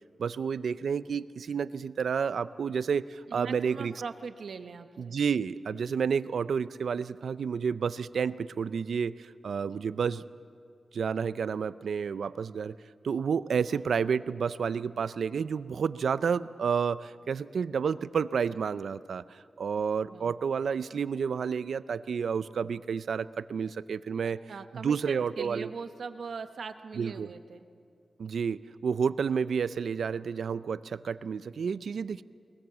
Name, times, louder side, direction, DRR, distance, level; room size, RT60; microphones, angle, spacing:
voice 1, 0.2-3.9 5.0-10.2 10.9-12.8 13.0-24.4 24.7-25.7 26.9-27.3 28.2-32.2, right 6 dB, 90° right, 15 dB, 0.5 m, -30 dB
voice 2, 3.3-5.2 13.7-13.8 20.1-20.3 24.2-27.7, right 5 dB, 75° right, 8 dB, 1.0 m, -41 dB
21.5 x 20.5 x 7.2 m, 2.3 s
wide cardioid pair, 165°, 0 cm